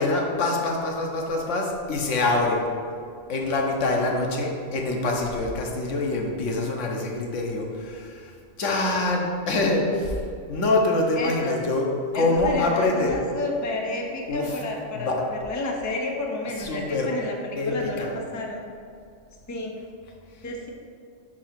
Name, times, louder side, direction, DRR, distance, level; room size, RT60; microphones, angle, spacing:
voice 1, 0.0-2.6 3.3-8.3 8.6-10.2 10.5-11.9 12.1-13.2 14.3-14.6 14.9-15.3 16.5-17.1 17.6-18.1, left 2 dB, 80° left, 0 dB, 1.2 m, -25 dB
voice 2, 11.2-11.6 12.1-18.1 18.3-18.6 19.5-19.7 20.4-20.7, left 2 dB, 20° left, 0 dB, 0.6 m, -30 dB
5.4 x 4.7 x 5.9 m, 2.3 s
omnidirectional pair, 1.2 m